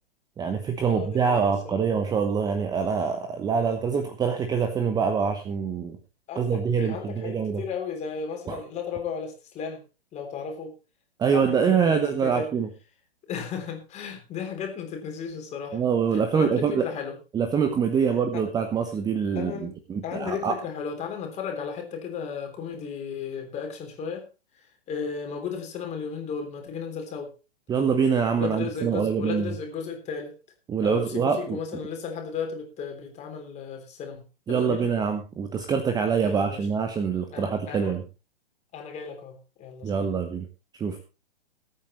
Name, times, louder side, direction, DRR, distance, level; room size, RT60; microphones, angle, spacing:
voice 1, 0.4-6.0 6.4-7.6 8.5-8.6 11.2-12.7 15.7-16.9 17.3-20.6 27.7-29.5 30.7-31.6 34.5-38.0 39.8-40.5 40.7-41.0, right 6 dB, 10° right, 7 dB, 1.0 m, -25 dB
voice 2, 0.9-1.8 6.3-9.8 10.1-10.7 11.3-12.5 13.3-15.8 16.1-17.2 18.3-18.4 19.3-19.7 20.0-24.3 24.6-27.3 28.3-30.3 30.8-34.9 36.2-36.7 37.3-37.9 38.7-40.1, left 6 dB, 20° left, 4 dB, 3.5 m, -35 dB
20.5 x 8.8 x 3.1 m, 0.31 s
figure-of-eight pair, 120°, 31 cm